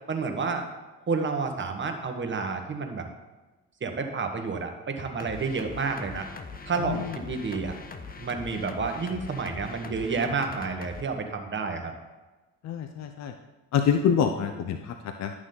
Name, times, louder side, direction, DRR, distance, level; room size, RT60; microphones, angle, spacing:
voice 1, 0.1-0.6 1.1-3.1 3.8-6.3 6.7-7.7 8.2-11.9, right 4 dB, 35° right, 5 dB, 1.4 m, -30 dB
sound 1, 5.2-11.0, left 4 dB, 25° left, 0.9 m, -41 dB
voice 2, 12.6-13.3 13.7-15.3, left 7 dB, 55° left, 7 dB, 0.7 m, -26 dB
11.5 x 6.2 x 4.0 m, 1.2 s
supercardioid pair, 70°, 33 cm